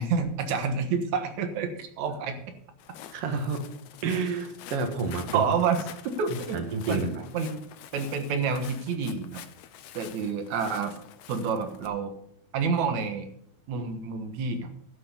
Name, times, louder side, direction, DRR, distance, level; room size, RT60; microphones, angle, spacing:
voice 1, 0.0-2.4 5.3-5.8 6.0-6.6 6.9-7.6 7.9-9.4 9.9-11.0 11.3-12.1 12.5-13.3 13.7-14.7, right 5 dB, 75° right, 7 dB, 2.6 m, -28 dB
Walk footsteps, 2.8-11.9, left 11 dB, 75° left, 2.0 m, -46 dB
voice 2, 3.1-3.6 4.0-5.4 6.5-7.3, right 4 dB, 55° right, 5 dB, 2.3 m, -29 dB
11.5 x 5.7 x 8.5 m, 0.71 s
omnidirectional pair, 3.5 m